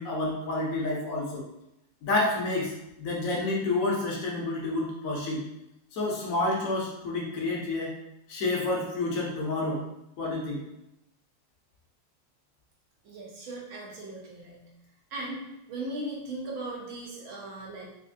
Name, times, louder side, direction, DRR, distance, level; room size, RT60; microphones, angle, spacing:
voice 1, 0.0-1.4 2.0-2.7 3.0-5.4 5.9-7.9 8.3-9.8 10.2-10.6, left 2 dB, 85° left, -2 dB, 0.7 m, -29 dB
voice 2, 13.0-14.6 15.1-15.4 15.7-17.8, right 2 dB, 80° right, -4 dB, 1.7 m, -38 dB
4.0 x 2.8 x 2.4 m, 0.86 s
omnidirectional pair, 2.3 m